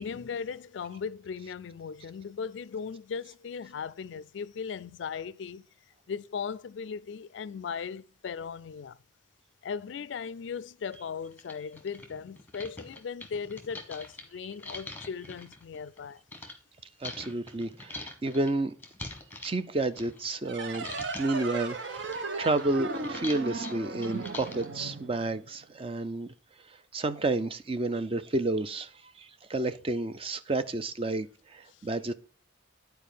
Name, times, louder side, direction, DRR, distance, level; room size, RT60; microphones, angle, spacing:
voice 1, 0.0-5.7 6.1-9.0 9.6-16.2 31.7-31.9, left 6 dB, 70° left, 0.3 m, -38 dB
sound 1, 10.2-10.3 10.9-11.0 11.3-16.5 17.0-20.5 20.7-21.4 21.8-24.8, left 2 dB, 10° left, 1.2 m, -44 dB
voice 2, 17.0-18.7 19.4-20.9 21.2-22.1 22.4-26.3 26.7-32.1, right 2 dB, 30° right, 0.5 m, -31 dB
sound 2, 20.4-25.7, right 3 dB, 65° right, 0.9 m, -37 dB
9.4 x 4.6 x 5.0 m
head